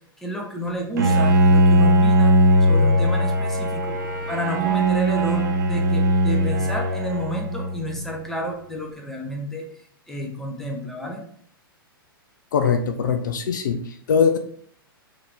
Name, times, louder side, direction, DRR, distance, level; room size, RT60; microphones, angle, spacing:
voice 1, 0.2-2.3 2.7-3.9 4.3-9.6 10.1-11.2, equal, 5° left, 0 dB, 0.6 m, -30 dB
Bowed string instrument, 1.0-8.1, right 1 dB, 55° right, 0.7 m, -19 dB
voice 2, 12.5-14.4, left 6 dB, 55° left, 6 dB, 0.4 m, -21 dB
3.9 x 2.7 x 3.3 m, 0.62 s
figure-of-eight pair, 105°, 12 cm